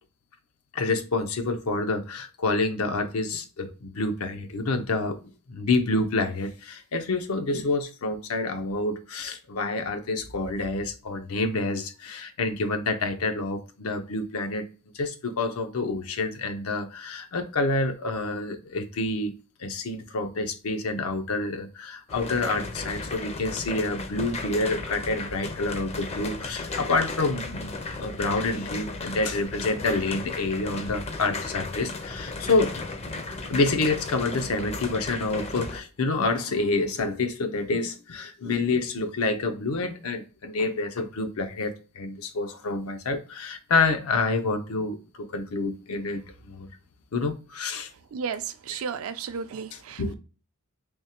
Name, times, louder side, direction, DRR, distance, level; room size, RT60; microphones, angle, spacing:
voice 1, 0.7-5.2 5.5-14.7 14.9-19.3 19.6-32.7 33.4-46.7 47.1-47.9 48.7-48.8 49.7-50.1, left 3 dB, 80° left, 0.6 m, -28 dB
sound 1, 22.1-35.8, left 3 dB, 30° left, 0.4 m, -35 dB
voice 2, 48.1-50.1, right 6 dB, 75° right, 0.4 m, -33 dB
3.5 x 3.2 x 2.9 m
head